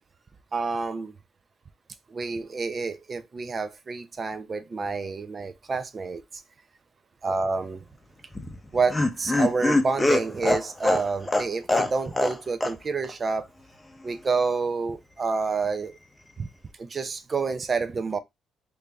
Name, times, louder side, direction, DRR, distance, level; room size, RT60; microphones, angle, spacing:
voice 1, 0.5-1.1 2.1-6.4 7.2-7.8 8.7-13.5 14.0-16.0 16.4-16.5 16.8-18.2, right 4 dB, 40° right, 0.5 m, -28 dB
Laughter, 8.3-12.4 12.6-12.7 13.0-13.1, left 2 dB, 15° left, 0.7 m, -24 dB
3.2 x 2.6 x 3.4 m
cardioid pair, 90°, 0 cm